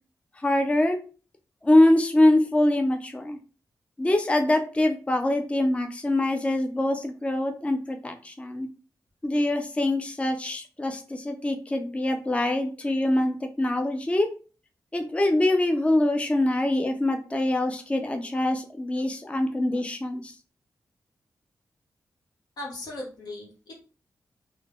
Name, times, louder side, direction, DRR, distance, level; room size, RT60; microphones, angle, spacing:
voice 1, 0.4-1.0 1.6-3.4 4.0-8.7 9.2-14.3 14.9-20.3, left 1 dB, 20° left, 5 dB, 0.4 m, -24 dB
voice 2, 22.6-23.8, left 1 dB, 85° left, -1 dB, 0.9 m, -38 dB
3.1 x 2.0 x 2.3 m, 0.37 s
cardioid pair, 55°, 7 cm